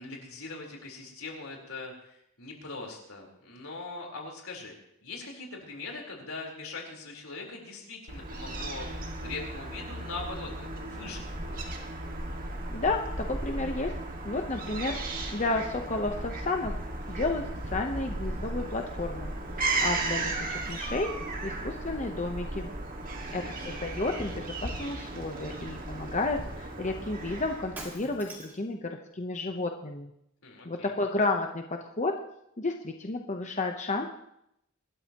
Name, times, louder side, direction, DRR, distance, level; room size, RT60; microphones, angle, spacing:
voice 1, 0.0-4.7 5.0-11.7 23.0-23.7 30.4-31.0, left 3 dB, 80° left, 0 dB, 4.2 m, -42 dB
Fowl / Gull seagull, 8.1-28.0, right 2 dB, 40° right, 1.9 m, -35 dB
voice 2, 12.7-13.9 14.2-15.0 15.3-16.7 17.1-19.3 19.8-21.1 21.4-22.7 23.3-30.1 30.6-32.1 32.6-34.1, left 2 dB, 35° left, 4 dB, 0.9 m, -32 dB
Shatter, 27.7-28.7, right 1 dB, 10° right, 2.8 m, -43 dB
24.5 x 12.5 x 3.0 m, 0.78 s
head